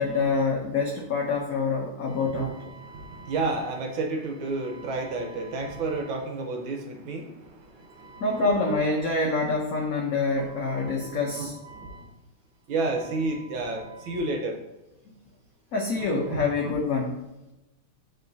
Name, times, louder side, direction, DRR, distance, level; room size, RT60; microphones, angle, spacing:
voice 1, 0.0-2.6 8.2-11.6 15.7-17.3, left 3 dB, 80° left, 1 dB, 0.7 m, -26 dB
voice 2, 2.2-8.4 8.7-8.8 10.3-12.1 12.7-14.6 16.3-16.7, right 3 dB, 75° right, 2 dB, 1.6 m, -32 dB
9.5 x 3.7 x 2.6 m, 0.99 s
omnidirectional pair, 2.4 m